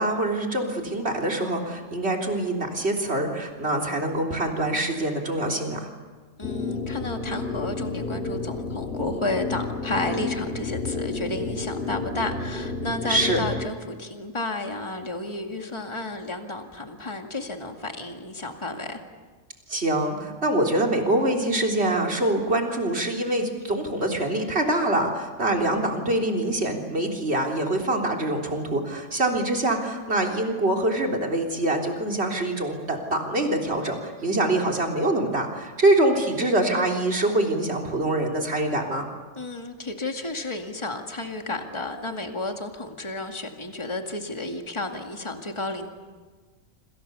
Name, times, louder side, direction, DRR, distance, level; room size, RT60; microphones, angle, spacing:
voice 1, 0.0-5.9 13.1-13.4 19.7-39.1, right 1 dB, 55° right, 1 dB, 3.8 m, -24 dB
sound 1, 6.4-13.7, left 3 dB, 50° left, 2.1 m, -31 dB
voice 2, 6.4-19.0 39.4-45.9, left 2 dB, 25° left, 4 dB, 2.3 m, -32 dB
28.0 x 26.5 x 7.0 m, 1.4 s
omnidirectional pair, 1.3 m